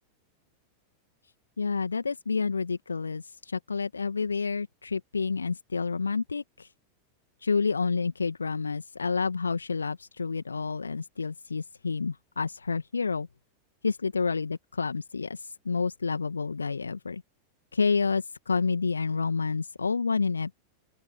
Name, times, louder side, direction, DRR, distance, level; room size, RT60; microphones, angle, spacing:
voice 1, 1.6-6.7 7.4-13.3 13.8-17.2 17.7-20.5, left 4 dB, 75° left, 2.0 m, -29 dB
open air
figure-of-eight pair, 90°, 0 cm